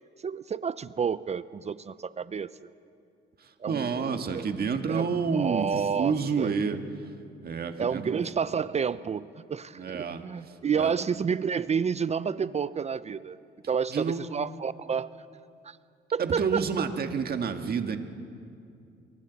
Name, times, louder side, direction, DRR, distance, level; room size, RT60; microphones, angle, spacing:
voice 1, 0.2-2.5 3.6-4.5 4.9-6.5 7.8-13.4 13.7-15.1 15.6-15.8 16.1-16.9, right 6 dB, 35° right, 16 dB, 0.5 m, -30 dB
voice 2, 3.4-6.8 7.4-8.2 9.7-10.9 13.9-14.2 16.2-18.0, right 5 dB, 50° right, 6 dB, 1.6 m, -29 dB
29.0 x 23.0 x 4.1 m, 2.4 s
cardioid pair, 90°, 20 cm